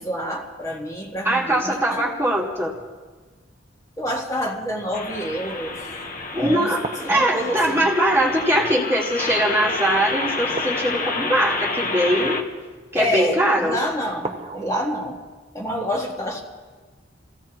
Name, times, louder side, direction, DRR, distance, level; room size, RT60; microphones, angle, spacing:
voice 1, 0.0-2.0 4.0-5.8 6.3-7.9 12.9-15.2 15.5-16.4, equal, 20° left, -2 dB, 1.7 m, -27 dB
voice 2, 1.2-2.7 6.3-6.8 7.1-12.4 12.9-13.8, right 1 dB, 15° right, -3 dB, 1.9 m, -21 dB
sound 1, 4.9-12.4, left 3 dB, 45° left, 1.2 m, -29 dB
sound 2, 6.8-8.9 10.5-12.8 14.2-14.7, right 2 dB, 35° right, 0.9 m, -37 dB
27.5 x 15.5 x 3.0 m, 1.4 s
head